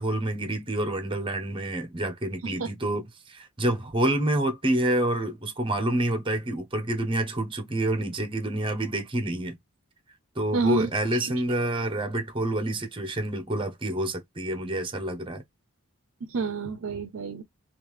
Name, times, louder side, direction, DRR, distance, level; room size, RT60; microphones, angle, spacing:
voice 1, 0.0-9.6 10.3-15.4, right 1 dB, 25° right, 0.8 m, -28 dB
voice 2, 10.5-11.3 16.3-17.4, right 4 dB, 70° right, 0.5 m, -29 dB
3.6 x 2.5 x 3.0 m
head